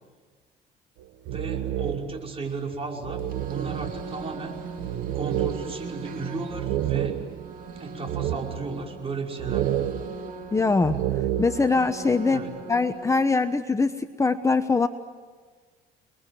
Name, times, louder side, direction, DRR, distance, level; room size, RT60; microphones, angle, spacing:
sound 1, 1.0-2.3 2.7-2.8 3.0-7.6 8.1-8.9 9.4-11.7, right 12 dB, 85° right, 1.3 m, -30 dB
voice 1, 1.3-4.7 5.1-7.2 7.8-9.8 12.3-12.5, right 3 dB, 35° right, 1 dB, 5.5 m, -35 dB
sound 2, 3.2-13.1, right 3 dB, 55° right, 2.5 m, -40 dB
voice 2, 10.5-11.0 11.4-12.4 12.7-14.9, left 4 dB, 15° left, 8 dB, 1.0 m, -22 dB
30.0 x 21.5 x 9.3 m, 1.5 s
cardioid pair, 110°, 17 cm